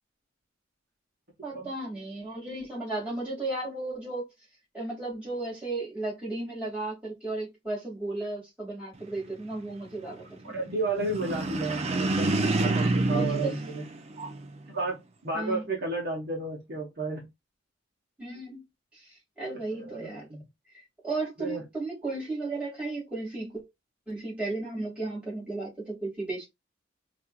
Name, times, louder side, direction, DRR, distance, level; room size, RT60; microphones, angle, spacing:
voice 1, 1.4-4.3 4.7-10.6 13.1-13.6 15.3-15.6 18.2-18.6 18.9-19.0 19.4-20.3 21.0-23.6 24.1-26.5, right 2 dB, 5° right, 2.2 m, -34 dB
voice 2, 10.4-12.3 12.6-13.8 14.7-17.2 19.8-20.5 21.4-21.6, right 3 dB, 55° right, 0.9 m, -32 dB
sound 1, 11.0-14.6, right 2 dB, 30° right, 0.4 m, -28 dB
4.2 x 2.5 x 2.3 m
head